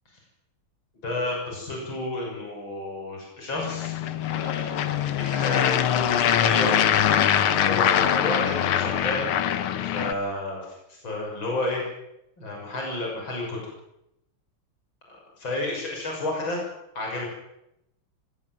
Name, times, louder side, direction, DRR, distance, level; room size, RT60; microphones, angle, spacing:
voice 1, 1.0-3.9 4.3-7.0 7.4-9.3 9.9-11.8 12.4-13.6 15.1-16.6 16.9-17.3, left 2 dB, 60° left, -1 dB, 7.2 m, -31 dB
sound 1, 3.6-10.1, left 10 dB, 80° left, 2.0 m, -23 dB
24.0 x 18.0 x 7.5 m, 0.82 s
omnidirectional pair, 2.4 m